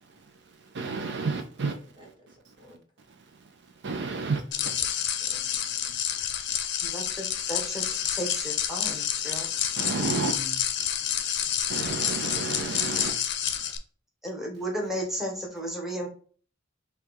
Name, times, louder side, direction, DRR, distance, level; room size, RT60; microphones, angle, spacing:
voice 1, 0.0-1.8 2.5-2.6 3.1-3.5 3.8-4.7 5.2-5.4 6.1-6.2 6.5-6.6 9.3-10.3 11.0-13.2 13.5-13.7, right 4 dB, 60° right, 6 dB, 0.5 m, -33 dB
voice 2, 2.0-2.8 4.6-5.9 10.1-10.6 12.9-13.0, equal, 25° right, -3 dB, 1.6 m, -48 dB
sound 1, 4.5-13.8, left 9 dB, 60° left, 0.6 m, -29 dB
voice 3, 6.8-9.5 14.2-16.1, equal, ahead, -1 dB, 1.0 m, -34 dB
5.6 x 2.3 x 3.1 m, 0.42 s
head